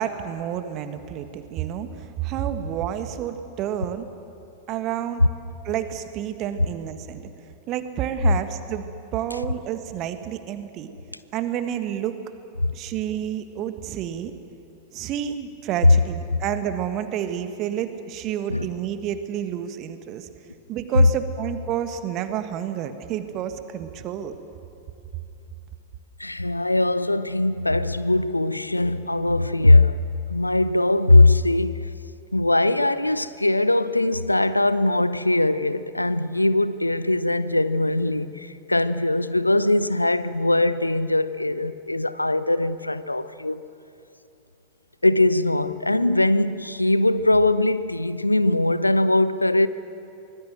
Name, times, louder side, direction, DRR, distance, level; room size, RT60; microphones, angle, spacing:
voice 1, 0.0-4.1 4.7-5.3 5.6-7.3 7.7-10.9 11.3-12.2 12.7-14.3 14.9-20.3 20.7-24.3, right 10 dB, 35° right, 1.6 m, -29 dB
voice 2, 26.2-30.0 30.3-31.9 32.3-43.6 45.0-49.7, left 2 dB, 85° left, 0.7 m, -21 dB
24.5 x 20.0 x 7.7 m
figure-of-eight pair, 90°, 0 cm